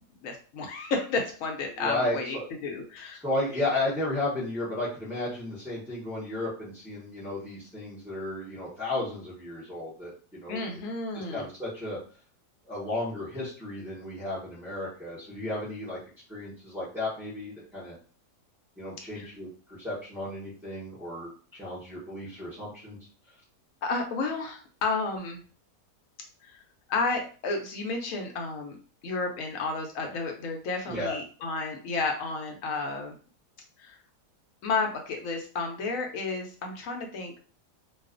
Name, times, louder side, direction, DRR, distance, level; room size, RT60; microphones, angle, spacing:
voice 1, 0.2-3.2 10.5-11.5 19.2-19.3 23.8-25.4 26.4-26.6 26.9-28.8 29.0-33.2 33.8-34.0 34.6-37.4, left 3 dB, 70° left, 3 dB, 0.9 m, -32 dB
voice 2, 1.8-2.5 3.2-10.6 11.1-12.0 12.6-16.0 16.3-17.9 18.8-21.3 21.6-23.0 30.9-31.2, left 2 dB, 5° right, -10 dB, 0.4 m, -33 dB
2.3 x 2.3 x 2.4 m, 0.39 s
omnidirectional pair, 1.7 m